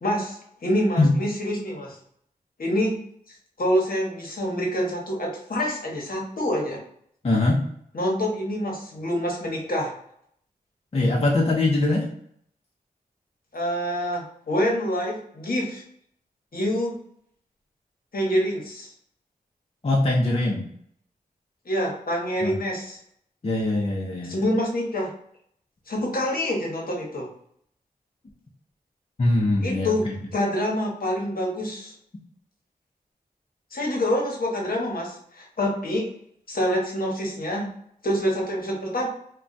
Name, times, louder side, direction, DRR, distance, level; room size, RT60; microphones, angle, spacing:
voice 1, 0.0-2.0 2.6-3.0 3.3-6.8 7.9-9.9 13.5-15.8 16.5-17.0 18.1-18.9 21.6-23.0 24.2-25.1 25.9-27.3 29.6-30.0 30.3-31.9 33.7-36.1 36.5-37.7 38.0-39.1, equal, 65° left, -1 dB, 1.0 m, -26 dB
voice 2, 7.2-7.6 10.9-12.0 19.8-20.7 22.4-22.6 23.4-24.4 29.2-30.1, left 2 dB, 40° left, -2 dB, 0.6 m, -22 dB
2.3 x 2.2 x 3.9 m, 0.67 s
cardioid pair, 50°, 16 cm